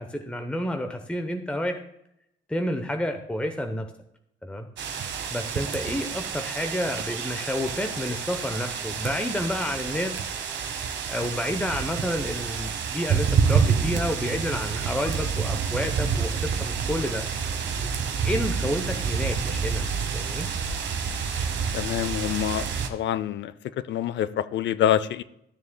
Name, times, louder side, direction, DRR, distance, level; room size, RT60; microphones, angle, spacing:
voice 1, 0.0-1.8 2.5-3.9 4.4-4.7 5.3-10.2 11.1-17.3 18.2-19.8 20.1-20.5, left 1 dB, 5° left, 5 dB, 0.8 m, -30 dB
sound 1, 4.8-22.9, right 6 dB, 65° right, 1.1 m, -28 dB
voice 2, 21.7-23.5 23.9-25.2, left 10 dB, 65° left, 16 dB, 0.5 m, -26 dB
13.0 x 7.0 x 2.2 m, 0.80 s
cardioid pair, 90°, 20 cm